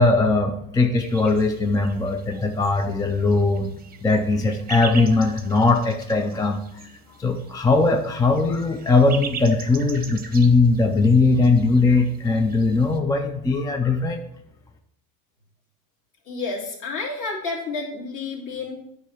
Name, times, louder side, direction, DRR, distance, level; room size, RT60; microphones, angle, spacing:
voice 1, 0.0-3.7 4.0-6.9 7.2-14.2, left 3 dB, 10° left, 4 dB, 0.3 m, -20 dB
sound 1, 0.9-13.0, right 6 dB, 20° right, 0.8 m, -41 dB
voice 2, 16.2-18.8, left 3 dB, 45° left, -2 dB, 2.7 m, -30 dB
9.5 x 3.6 x 5.7 m, 0.75 s
cardioid pair, 130°, 42 cm